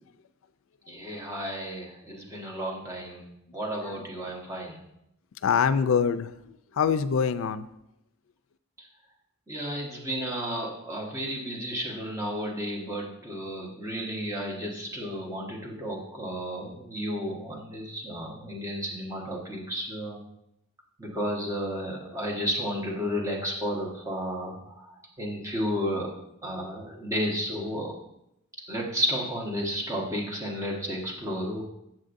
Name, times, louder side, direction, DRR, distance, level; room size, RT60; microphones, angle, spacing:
voice 1, 0.9-3.2 3.5-4.8 9.5-20.2 21.0-26.1 26.4-27.9 28.7-31.6, equal, 15° right, -2 dB, 1.1 m, -32 dB
voice 2, 5.4-7.7, left 6 dB, 70° left, 13 dB, 0.4 m, -25 dB
7.5 x 6.3 x 2.6 m, 0.80 s
head